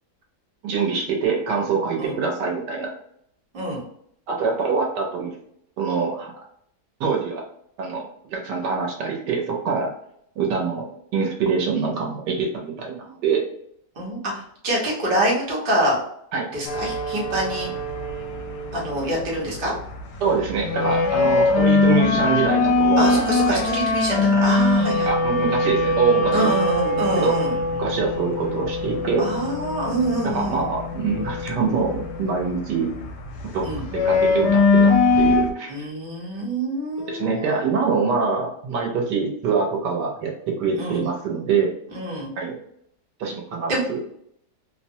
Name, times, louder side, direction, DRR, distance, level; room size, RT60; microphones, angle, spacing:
voice 1, 0.6-2.9 4.3-5.4 5.8-6.3 7.0-7.4 7.8-9.9 10.4-10.9 11.1-13.4 16.3-16.5 20.2-23.2 23.5-23.6 25.0-26.5 27.2-27.4 27.8-29.3 30.2-32.9 33.4-33.7 33.9-35.9 37.1-41.7 42.4-42.6 43.2-44.0, right 5 dB, 85° right, 0 dB, 1.3 m, -24 dB
voice 2, 14.0-16.0 16.5-17.7 18.7-19.7 21.2-21.4 23.0-25.1 26.3-27.6 29.2-30.6 33.6-33.8 35.7-37.6 40.7-41.0 41.9-42.3 43.7-43.8, right 1 dB, 40° right, -4 dB, 1.0 m, -25 dB
sound 1, 16.7-35.5, left 3 dB, 80° left, 1.1 m, -22 dB
3.1 x 2.1 x 2.7 m, 0.69 s
omnidirectional pair, 1.8 m